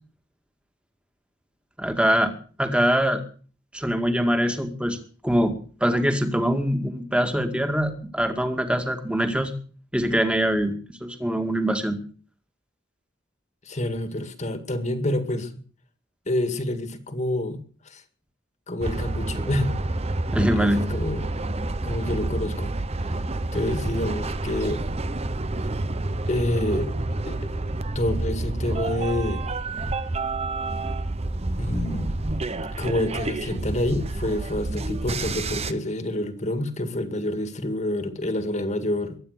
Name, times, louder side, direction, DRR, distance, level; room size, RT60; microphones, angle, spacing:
voice 1, 1.8-2.3 2.6-3.2 3.7-5.0 5.2-5.6 5.8-9.5 9.9-12.0 20.3-20.8, equal, 5° right, 7 dB, 2.1 m, -23 dB
voice 2, 13.7-15.6 16.3-18.0 18.7-19.7 20.4-21.3 21.8-22.7 23.1-23.2 23.5-24.8 26.3-26.9 27.3-27.5 27.9-29.4 31.6-32.1 32.8-39.2, left 1 dB, 40° left, 9 dB, 2.1 m, -28 dB
sound 1, 18.8-35.7, right 2 dB, 35° right, 0.9 m, -29 dB
22.5 x 9.5 x 6.6 m, 0.42 s
head